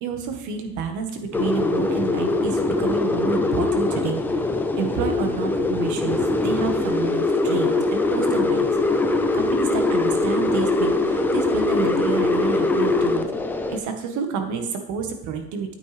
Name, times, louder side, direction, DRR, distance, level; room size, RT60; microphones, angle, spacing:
voice 1, 0.0-4.2 4.8-8.7 9.3-13.2 13.7-15.7, right 5 dB, 50° right, 5 dB, 1.6 m, -29 dB
sound 1, 1.3-13.8, left 2 dB, 5° left, 0.3 m, -22 dB
12.0 x 9.2 x 3.5 m, 0.86 s
cardioid pair, 155°, 39 cm